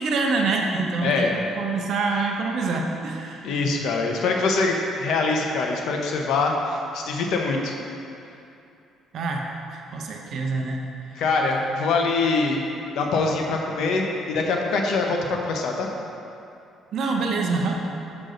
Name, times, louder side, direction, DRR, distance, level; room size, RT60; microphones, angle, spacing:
voice 1, 0.0-3.4 9.1-10.9 16.9-17.8, right 3 dB, 60° right, 1 dB, 0.7 m, -26 dB
voice 2, 1.0-1.3 3.4-7.7 11.2-12.6 13.0-15.9, left 3 dB, 70° left, 1 dB, 0.8 m, -24 dB
6.6 x 6.1 x 3.8 m, 2.7 s
cardioid pair, 125°, 0 cm